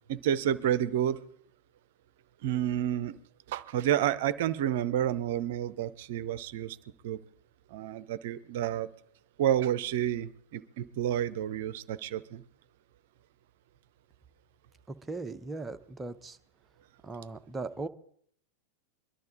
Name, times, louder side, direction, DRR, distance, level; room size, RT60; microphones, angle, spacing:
voice 1, 0.1-1.2 2.4-3.2 3.5-6.8 7.0-7.2 7.7-8.9 9.4-12.4, right 10 dB, 55° right, 16 dB, 0.6 m, -30 dB
voice 2, 14.9-16.4 17.0-17.9, right 3 dB, 15° right, 9 dB, 0.7 m, -38 dB
22.5 x 12.0 x 3.8 m, 0.65 s
figure-of-eight pair, 90°, 0 cm